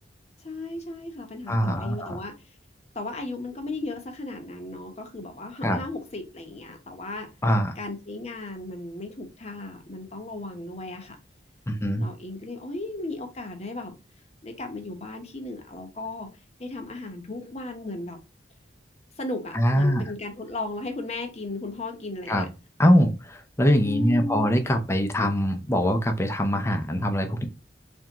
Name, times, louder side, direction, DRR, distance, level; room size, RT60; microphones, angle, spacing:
voice 1, 0.4-2.5 2.9-7.3 7.8-11.2 12.0-13.9 14.4-16.3 16.6-18.2 19.2-22.5 23.8-24.5, left 2 dB, 40° left, 5 dB, 1.0 m, -35 dB
voice 2, 1.5-2.2 5.6-5.8 7.4-7.8 11.7-12.1 19.5-20.0 22.3-22.5 22.8-27.4, equal, 15° left, 6 dB, 0.6 m, -23 dB
3.6 x 3.5 x 2.9 m, 0.29 s
head